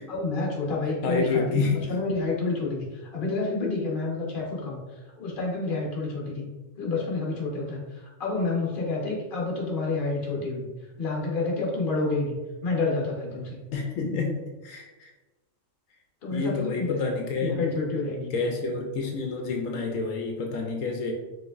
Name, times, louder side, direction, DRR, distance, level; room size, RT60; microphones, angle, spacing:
voice 1, 0.1-4.8 5.2-6.5 6.8-10.7 11.0-12.4 12.6-13.6 16.2-18.3, left 3 dB, 45° left, -3 dB, 1.1 m, -29 dB
voice 2, 1.0-1.9 13.7-15.1 16.3-17.8 18.3-21.1, left 4 dB, 85° left, 2 dB, 1.0 m, -28 dB
4.9 x 3.2 x 2.4 m, 1.1 s
omnidirectional pair, 1.4 m